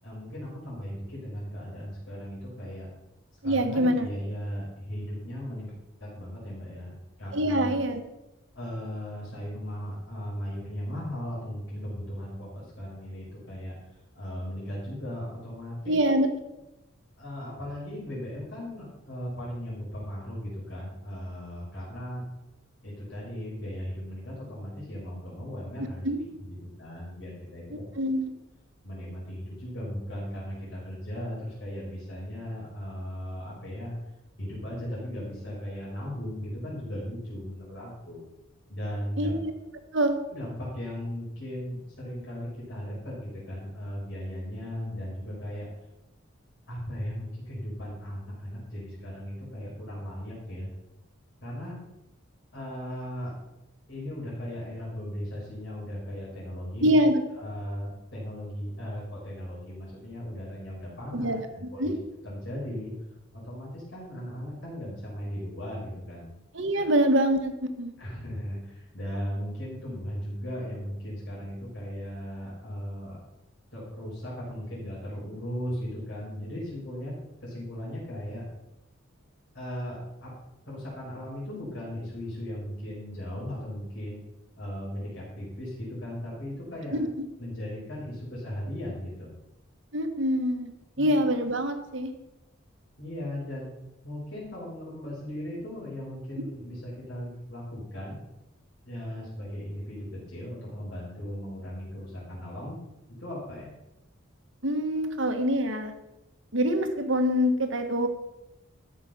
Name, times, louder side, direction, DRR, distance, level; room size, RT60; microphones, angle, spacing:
voice 1, 0.0-2.9 3.3-5.7 6.0-7.7 8.5-13.8 14.1-16.0 17.2-22.2 22.8-26.1 26.4-27.8 28.8-33.9 34.4-38.2 38.7-39.3 40.3-45.7 46.7-50.7 51.4-51.8 52.5-53.3 53.9-56.9 57.4-61.9 62.2-62.9 63.3-66.3 66.7-66.9 68.0-73.2 73.7-77.1 77.4-78.4 79.5-80.3 80.7-84.2 84.6-87.0 87.4-89.3 91.0-91.1 93.0-93.7 94.0-98.2 98.9-102.8 103.1-103.7, equal, 55° left, -7 dB, 4.9 m, -37 dB
voice 2, 3.4-4.1 7.3-8.0 15.9-16.3 26.0-26.2 28.0-28.3 39.2-39.5 39.9-40.2 56.8-57.2 61.1-61.4 61.8-61.9 66.5-67.9 86.9-87.3 89.9-90.7 91.0-92.1 104.6-105.9 106.5-108.1, equal, 60° right, 6 dB, 1.4 m, -25 dB
14.0 x 6.2 x 5.9 m, 0.94 s
head